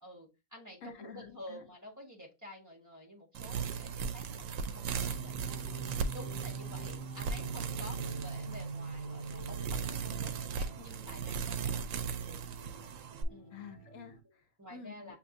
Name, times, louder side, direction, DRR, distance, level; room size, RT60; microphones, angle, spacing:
voice 1, 0.0-5.4 6.1-12.4 13.3-13.5 14.6-15.2, left 1 dB, 15° right, 1.5 m, -50 dB
voice 2, 0.8-1.7 13.5-14.4 14.7-15.2, left 5 dB, 80° left, 1.1 m, -49 dB
sound 1, 3.3-13.2, right 6 dB, 80° right, 0.9 m, -38 dB
sound 2, 5.0-14.2, right 3 dB, 50° left, 1.2 m, -45 dB
6.6 x 2.7 x 2.5 m
omnidirectional pair, 1.3 m